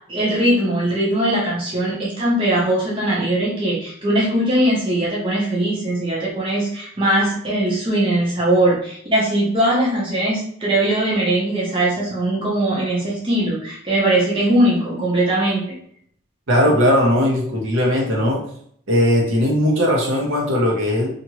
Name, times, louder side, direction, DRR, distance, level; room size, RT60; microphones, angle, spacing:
voice 1, 0.1-15.8, right 1 dB, 25° right, -5 dB, 0.7 m, -20 dB
voice 2, 16.5-18.4 18.9-21.1, equal, 70° right, -2 dB, 0.8 m, -18 dB
2.8 x 2.5 x 2.9 m, 0.65 s
head